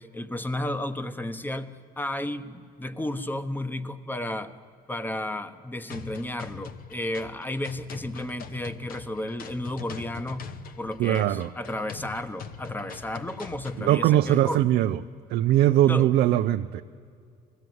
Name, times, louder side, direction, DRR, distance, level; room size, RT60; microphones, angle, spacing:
voice 1, 0.0-4.5 4.9-10.5 10.8-14.6 15.9-16.1, left 1 dB, 10° left, 12 dB, 1.1 m, -33 dB
sound 1, 5.9-13.9, left 6 dB, 60° left, 1.1 m, -42 dB
voice 2, 11.0-11.5 13.8-15.0 15.3-16.8, right 13 dB, 75° right, 6 dB, 0.6 m, -21 dB
20.5 x 15.5 x 9.4 m, 2.3 s
cardioid pair, 110°, 17 cm